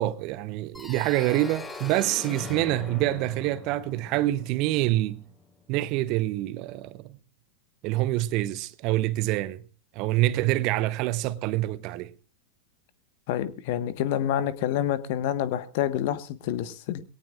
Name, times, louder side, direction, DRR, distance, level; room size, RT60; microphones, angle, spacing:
voice 1, 0.0-5.2 5.7-7.2 7.8-9.6 9.9-12.1, right 16 dB, 40° right, 0.9 m, -26 dB
sound 1, 0.7-5.4, left 3 dB, 10° left, 6.6 m, -41 dB
voice 2, 13.3-17.0, left 11 dB, 50° left, 1.4 m, -28 dB
22.5 x 17.5 x 2.5 m
figure-of-eight pair, 90°, 0 cm